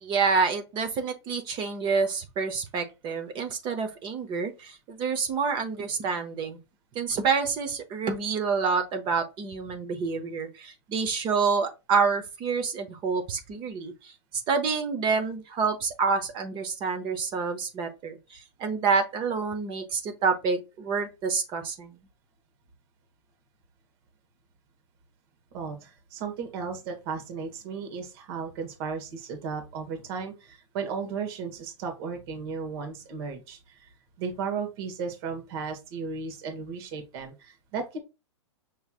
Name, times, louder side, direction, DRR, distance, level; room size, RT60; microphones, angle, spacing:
voice 1, 0.0-6.6 6.9-14.1 14.5-21.9, right 5 dB, 30° right, 0.9 m, -28 dB
voice 2, 25.5-33.9 34.2-38.0, right 5 dB, 50° right, 1.4 m, -35 dB
6.0 x 3.2 x 2.4 m
hypercardioid pair, 125°, 16 cm